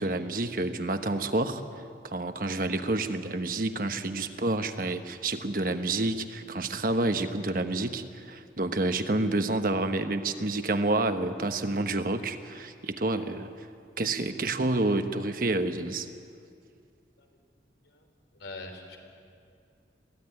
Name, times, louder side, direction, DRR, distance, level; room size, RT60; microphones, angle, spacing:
voice 1, 0.0-1.6 2.0-13.5 14.0-16.1, right 2 dB, 50° right, 8 dB, 1.1 m, -29 dB
voice 2, 18.4-19.0, left 2 dB, 85° left, 3 dB, 3.8 m, -43 dB
22.5 x 16.0 x 9.8 m, 2.4 s
head